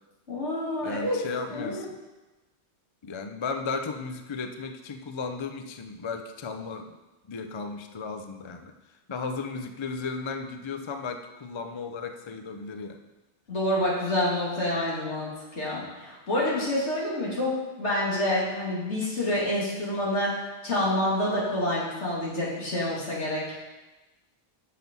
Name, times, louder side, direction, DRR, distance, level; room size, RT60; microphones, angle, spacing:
voice 1, 0.3-1.2 1.5-1.9 13.5-15.3 15.6-20.3 20.6-23.4, left 1 dB, 80° left, -5 dB, 2.7 m, -27 dB
voice 2, 0.8-2.0 3.0-7.0 7.3-8.7 9.1-13.1, left 4 dB, 35° left, 6 dB, 0.4 m, -35 dB
7.5 x 6.2 x 5.3 m, 1.1 s
omnidirectional pair, 1.2 m